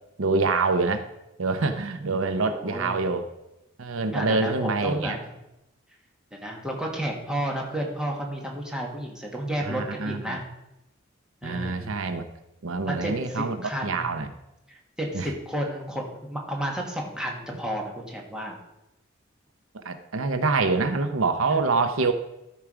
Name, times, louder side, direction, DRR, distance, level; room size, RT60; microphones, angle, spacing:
voice 1, 0.2-1.1 1.4-3.2 3.8-5.2 9.6-10.4 11.4-12.2 12.6-14.3 15.1-15.3 19.7-22.1, right 3 dB, 85° right, 9 dB, 0.8 m, -26 dB
voice 2, 2.3-3.0 4.1-5.2 6.3-10.4 11.4-11.9 12.8-14.1 15.0-18.6 21.5-21.6, right 1 dB, 5° right, -1 dB, 1.7 m, -32 dB
13.0 x 4.8 x 4.9 m, 0.90 s
head